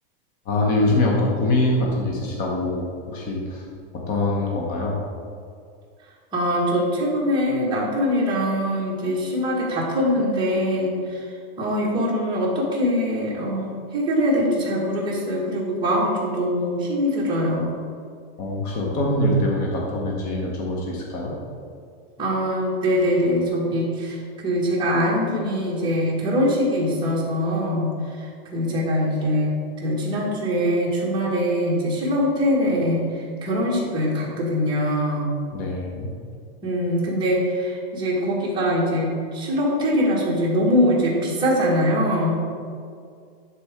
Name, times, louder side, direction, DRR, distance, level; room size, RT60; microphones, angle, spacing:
voice 1, 0.5-3.6 3.9-5.0 18.4-21.4 35.5-36.1, left 1 dB, 30° left, -2 dB, 1.1 m, -23 dB
voice 2, 6.3-11.2 11.6-13.7 13.9-17.7 22.2-24.2 24.4-27.9 28.2-28.3 28.5-29.5 29.8-35.3 36.6-42.4, equal, 15° right, -5 dB, 1.7 m, -23 dB
11.0 x 4.4 x 3.6 m, 2.2 s
supercardioid pair, 160°, 30 cm